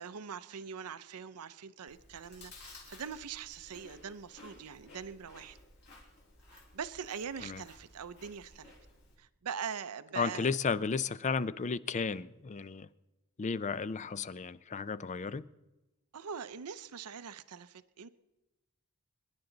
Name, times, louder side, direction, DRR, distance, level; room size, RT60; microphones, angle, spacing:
voice 1, 0.0-5.6 6.5-8.7 9.2-10.5 16.1-18.1, right 7 dB, 90° right, 13 dB, 0.6 m, -42 dB
Chewing mastication, 1.9-9.2, left 2 dB, 50° left, 4.2 m, -56 dB
voice 2, 10.2-12.9 13.4-15.4, left 5 dB, 30° left, 17 dB, 0.4 m, -33 dB
26.0 x 10.5 x 3.9 m, 1.0 s
head